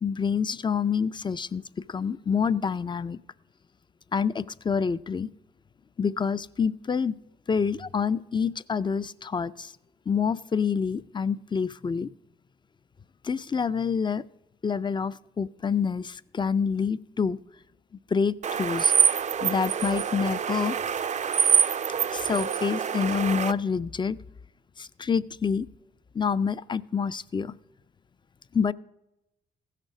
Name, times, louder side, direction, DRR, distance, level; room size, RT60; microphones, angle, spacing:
voice 1, 0.0-1.6 1.9-3.2 4.1-5.3 6.0-7.1 7.5-9.7 10.1-12.1 13.2-14.2 14.6-17.4 18.1-18.9 19.4-20.8 22.1-24.2 24.8-25.7 26.1-27.6 28.5-28.7, left 6 dB, 25° left, 17 dB, 0.4 m, -27 dB
sound 1, 18.4-23.5, right 8 dB, 40° right, 0.4 m, -25 dB
15.5 x 6.6 x 4.8 m, 0.92 s
cardioid pair, 75°, 18 cm